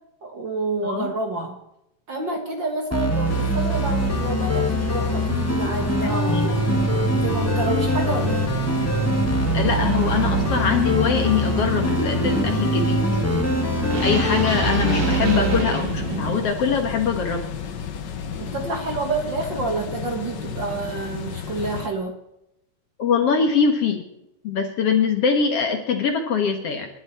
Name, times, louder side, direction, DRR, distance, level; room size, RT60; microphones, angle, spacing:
voice 1, 0.2-1.6 2.1-6.9 7.1-8.5 18.4-22.2, right 3 dB, 45° right, 3 dB, 2.0 m, -28 dB
sound 1, 2.9-15.6, equal, 5° left, 1.3 m, -23 dB
sound 2, 3.2-21.9, left 7 dB, 90° left, 0.9 m, -33 dB
voice 2, 6.0-6.4 9.5-13.1 14.0-17.4 23.0-24.1 24.4-26.9, left 6 dB, 55° left, 5 dB, 2.2 m, -23 dB
sound 3, 6.5-16.4, right 3 dB, 75° right, 4.2 m, -29 dB
29.0 x 11.5 x 4.3 m, 0.85 s
omnidirectional pair, 3.6 m